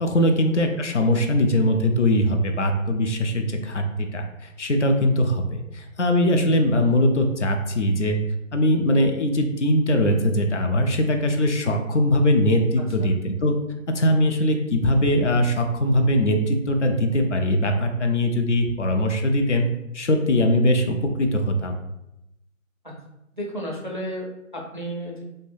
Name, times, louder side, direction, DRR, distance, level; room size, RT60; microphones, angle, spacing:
voice 1, 0.0-8.2 8.5-13.5 13.9-19.7 19.9-21.8, left 1 dB, 60° left, 4 dB, 0.5 m, -21 dB
voice 2, 23.3-25.2, equal, 40° right, -2 dB, 0.4 m, -33 dB
2.7 x 2.1 x 3.3 m, 0.87 s
figure-of-eight pair, 155°, 40 cm